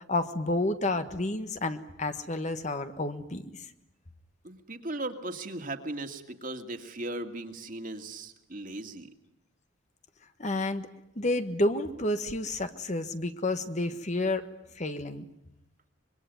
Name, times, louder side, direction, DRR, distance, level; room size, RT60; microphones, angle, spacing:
voice 1, 0.1-3.6 10.4-10.9 11.2-14.4 14.8-15.2, left 2 dB, 35° left, 9 dB, 1.4 m, -30 dB
voice 2, 4.4-9.1, right 2 dB, 45° right, 5 dB, 2.2 m, -37 dB
25.5 x 23.0 x 9.5 m, 0.85 s
head